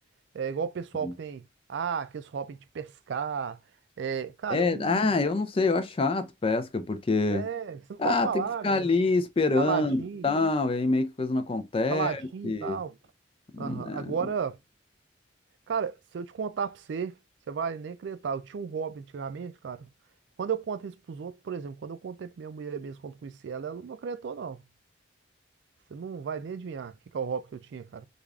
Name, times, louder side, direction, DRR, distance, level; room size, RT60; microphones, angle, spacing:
voice 1, 0.3-3.6 4.0-5.1 7.3-8.9 9.6-10.3 11.9-13.0 13.6-14.6 15.7-17.1 17.5-19.9 20.4-24.6 25.9-28.1, right 6 dB, 65° right, 0.3 m, -34 dB
voice 2, 4.5-7.5 8.0-12.8 13.5-14.1, left 3 dB, 30° left, 0.4 m, -26 dB
3.3 x 2.4 x 3.5 m
head